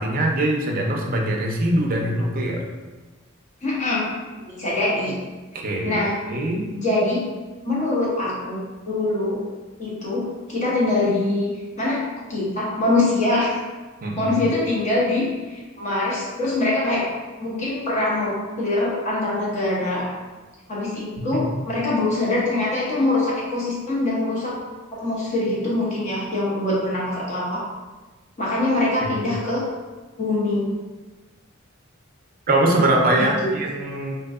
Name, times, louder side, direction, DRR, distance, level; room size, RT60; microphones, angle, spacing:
voice 1, 0.0-2.6 5.5-6.7 14.0-14.3 21.3-21.7 29.1-29.2 32.5-34.2, right 1 dB, 45° right, 0 dB, 0.5 m, -22 dB
voice 2, 3.6-4.1 4.5-5.1 5.8-6.1 6.8-7.2 7.6-9.4 9.8-11.5 11.8-12.0 12.3-13.5 14.2-17.1 17.4-20.1 20.7-24.6 25.0-27.6 28.4-29.6 30.2-30.7 33.2-33.5, left 2 dB, 35° left, -6 dB, 0.9 m, -23 dB
3.7 x 2.6 x 2.4 m, 1.3 s
head